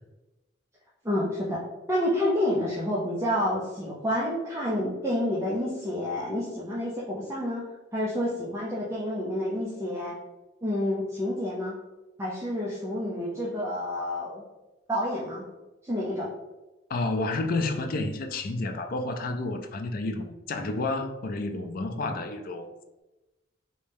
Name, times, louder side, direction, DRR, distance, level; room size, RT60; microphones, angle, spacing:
voice 1, 1.0-1.6 1.9-10.2 10.6-11.8 12.2-14.4 14.9-15.4 15.8-16.3, left 1 dB, 15° right, -7 dB, 0.5 m, -29 dB
voice 2, 16.9-22.7, left 2 dB, 50° left, 5 dB, 0.4 m, -30 dB
3.1 x 2.7 x 3.4 m, 1.1 s
head